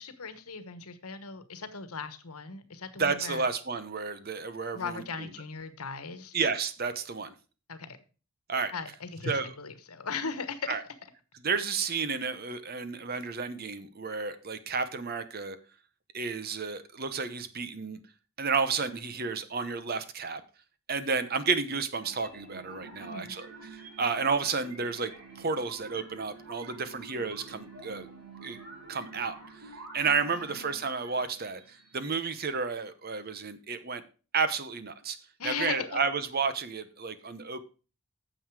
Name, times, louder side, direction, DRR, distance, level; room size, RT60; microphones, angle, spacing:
voice 1, 0.0-3.4 4.7-6.4 7.7-8.0 8.7-10.9 23.0-23.4 30.4-30.8 35.4-36.0, left 5 dB, 90° left, 11 dB, 1.3 m, -38 dB
voice 2, 3.0-5.3 6.3-7.3 8.5-8.7 9.3-9.5 10.7-10.8 11.4-15.6 16.1-18.0 18.4-20.4 20.9-25.1 25.4-28.1 28.4-28.6 28.9-29.6 29.9-34.0 34.3-35.2 35.4-37.6, right 5 dB, 45° right, 12 dB, 0.9 m, -31 dB
sound 1, 22.0-32.6, right 3 dB, 90° right, 5.3 m, -48 dB
9.2 x 7.1 x 4.8 m, 0.35 s
head